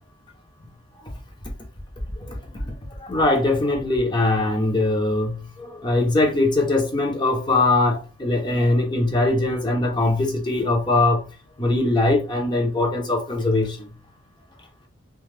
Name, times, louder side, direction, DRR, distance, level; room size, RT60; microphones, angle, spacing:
voice 1, 2.2-2.7 3.0-11.2 11.6-13.9, left 2 dB, 25° left, 0.7 m, -21 dB
2.3 x 2.2 x 3.2 m
head